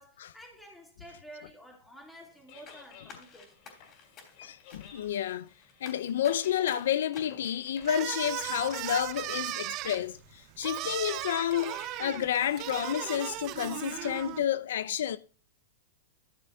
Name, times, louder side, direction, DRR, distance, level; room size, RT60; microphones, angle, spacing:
voice 1, 0.0-3.6, right 1 dB, 5° left, 2.7 m, -51 dB
sound 1, 2.2-14.4, left 7 dB, 50° left, 3.4 m, -55 dB
sound 2, 2.7-8.8 9.1-9.3, left 5 dB, 30° left, 3.2 m, -52 dB
voice 2, 4.4-5.5 5.8-15.2, left 10 dB, 70° left, 0.5 m, -30 dB
sound 3, 7.8-14.4, right 18 dB, 40° right, 0.3 m, -37 dB
13.0 x 6.7 x 2.6 m
hypercardioid pair, 130°, 0 cm